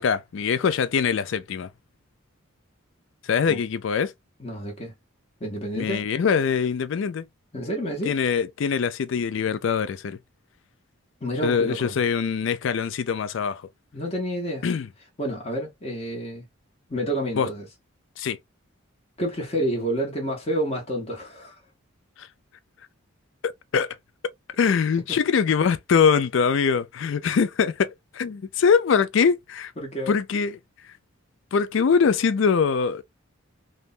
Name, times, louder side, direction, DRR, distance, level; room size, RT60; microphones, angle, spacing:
voice 1, 0.0-1.7 3.3-4.1 5.8-7.3 8.0-10.2 11.4-13.6 14.6-14.9 17.4-17.5 18.2-18.4 23.4-24.0 24.6-29.7 30.1-30.6 31.5-33.0, left 6 dB, 60° left, 0.4 m, -23 dB
voice 2, 4.4-4.9 5.4-6.0 7.5-8.2 11.2-12.0 13.9-14.7 15.2-16.4 16.9-17.7 19.2-21.5 25.1-25.2 29.8-30.2, equal, 30° left, 0.8 m, -29 dB
3.2 x 2.1 x 2.4 m
head